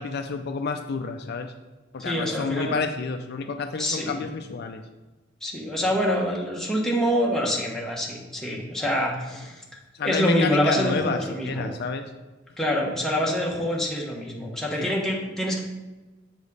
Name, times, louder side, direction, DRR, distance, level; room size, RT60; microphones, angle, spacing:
voice 1, 0.0-1.5 1.9-4.8 9.9-12.0 14.8-14.9, left 4 dB, 55° left, 7 dB, 0.4 m, -29 dB
voice 2, 2.0-2.8 3.8-4.2 5.4-9.6 10.0-11.7 12.6-15.6, equal, 5° left, -3 dB, 1.2 m, -26 dB
7.3 x 5.2 x 4.0 m, 1.1 s
head